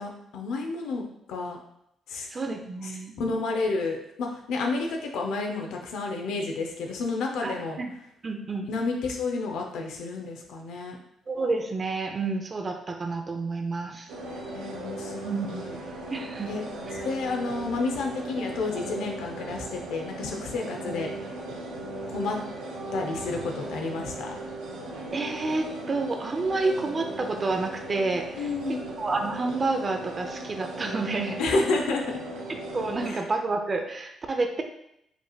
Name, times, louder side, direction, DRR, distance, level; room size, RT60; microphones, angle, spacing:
voice 1, 0.0-1.6 2.1-2.3 2.8-2.9 3.2-7.8 8.7-11.0 14.3-15.8 16.5-16.6 16.9-21.4 22.1-22.4 22.9-24.4 28.3-28.8 31.4-32.0 33.0-33.2, left 3 dB, 85° left, 2 dB, 0.6 m, -30 dB
voice 2, 2.3-3.2 7.4-7.9 8.2-8.7 11.3-14.1 15.2-15.6 16.1-16.5 16.9-17.0 25.1-28.3 28.7-31.4 32.7-34.6, right 3 dB, 35° right, 5 dB, 0.5 m, -29 dB
sound 1, 14.1-33.1, right 1 dB, 85° right, 0.6 m, -37 dB
5.2 x 3.0 x 2.3 m, 0.77 s
cardioid pair, 90°, 0 cm